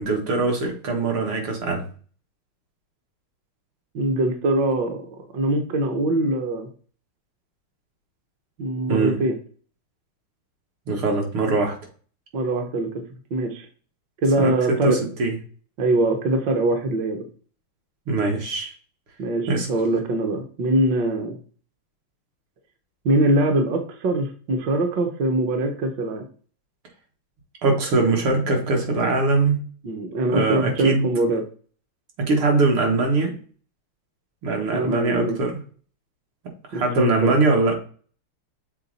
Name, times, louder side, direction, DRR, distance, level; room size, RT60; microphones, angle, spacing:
voice 1, 0.0-1.8 8.9-9.2 10.9-11.8 14.4-15.3 18.1-18.7 19.5-19.7 27.6-29.6 30.3-31.1 32.3-33.3 34.4-35.5 36.7-37.8, right 3 dB, 75° right, 1 dB, 2.4 m, -22 dB
voice 2, 3.9-5.0 5.3-6.7 8.6-9.4 12.3-12.9 13.3-13.7 14.2-15.0 15.8-17.2 19.2-21.4 23.0-26.2 29.8-31.4 34.7-35.3 36.7-37.4, right 1 dB, 60° right, 5 dB, 1.5 m, -22 dB
6.9 x 4.0 x 4.0 m, 0.41 s
omnidirectional pair, 2.4 m